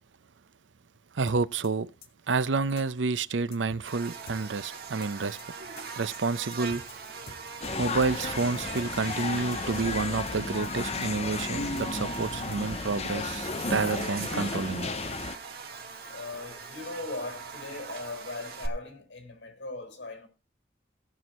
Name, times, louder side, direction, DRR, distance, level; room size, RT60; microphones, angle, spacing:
voice 1, 1.1-1.9 2.3-5.4 6.0-6.8 7.8-14.9, right 4 dB, 90° right, 0.6 m, -29 dB
sound 1, 1.3-1.7 2.0-2.1 2.4-2.5 2.8-2.9 3.1-3.2 3.5-3.9 4.3-4.7 5.0-5.1 5.4-5.5 5.8-5.9 6.1-6.2 6.5-6.9 7.3-7.7 8.0-8.1 8.4-8.5 8.8-8.9 9.1-9.2 9.5-9.9 10.3-10.7 11.0-11.1 11.4-11.5 11.8-11.9 12.1-12.2 12.5-12.9, left 3 dB, 55° left, 1.8 m, -48 dB
Buzz, 3.9-18.7, right 5 dB, 55° right, 1.7 m, -41 dB
sound 2, 7.6-15.4, left 4 dB, 35° left, 0.5 m, -34 dB
voice 2, 16.1-20.3, left 3 dB, 80° left, 4.1 m, -39 dB
18.0 x 6.3 x 4.2 m
head